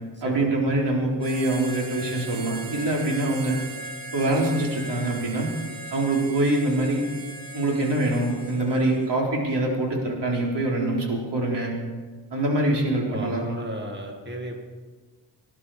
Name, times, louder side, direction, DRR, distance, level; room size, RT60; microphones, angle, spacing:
voice 1, 0.2-3.6 4.1-5.5 5.9-7.0 7.5-11.7 12.3-13.4, right 2 dB, 70° right, -2 dB, 4.0 m, -24 dB
Harmonica, 1.2-9.2, right 2 dB, 50° right, 1.8 m, -39 dB
voice 2, 13.1-14.6, right 1 dB, 25° right, 2 dB, 2.1 m, -35 dB
19.0 x 11.5 x 5.0 m, 1.4 s
wide cardioid pair, 95°, 43 cm